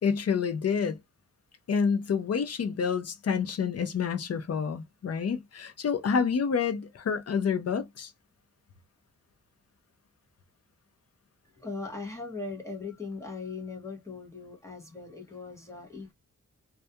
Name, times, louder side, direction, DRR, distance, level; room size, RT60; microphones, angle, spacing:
voice 1, 0.0-1.0 1.7-8.1, left 6 dB, 55° left, 0.5 m, -28 dB
voice 2, 11.5-16.1, left 3 dB, 10° left, 0.7 m, -39 dB
2.3 x 2.2 x 2.7 m
wide cardioid pair, 145°, 31 cm